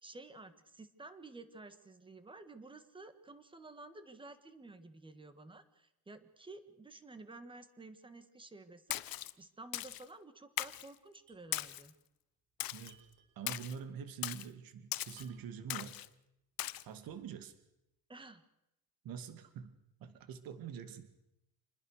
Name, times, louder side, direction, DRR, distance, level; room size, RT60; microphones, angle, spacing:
voice 1, 0.0-11.9 18.1-18.4, right 3 dB, 15° right, 11 dB, 1.7 m, -52 dB
Splash splatter, 8.9-9.3 9.7-10.0 10.6-10.9 11.5-11.9 12.6-12.9 13.5-13.8 14.2-14.5 14.9-15.3 15.7-16.1 16.6-16.8, left 15 dB, 65° left, 1.0 m, -39 dB
sound 1, 11.3-11.5 11.8-11.9 12.8-14.0 15.2-15.7 16.2-16.3 17.0-17.4, right 6 dB, 90° right, 5.6 m, -64 dB
voice 2, 13.4-16.0 16.9-17.5 19.0-19.7 20.0-21.1, right 7 dB, 65° right, 10 dB, 2.4 m, -45 dB
27.5 x 21.0 x 6.6 m, 0.87 s
cardioid pair, 175°, 37 cm